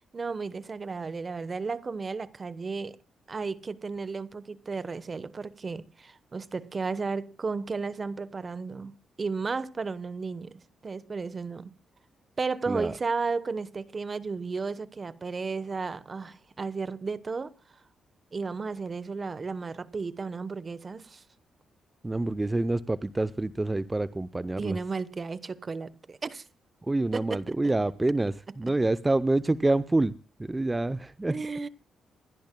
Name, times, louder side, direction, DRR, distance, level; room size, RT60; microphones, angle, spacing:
voice 1, 0.1-3.0 3.3-11.7 12.4-17.5 18.3-21.2 24.6-26.5 27.1-27.7 28.5-28.7 31.3-31.7, right 4 dB, 40° right, 1.0 m, -34 dB
voice 2, 22.0-24.8 26.9-30.1 30.4-31.3, right 2 dB, 20° right, 0.6 m, -27 dB
28.0 x 11.5 x 2.2 m
supercardioid pair, 65°, 0 cm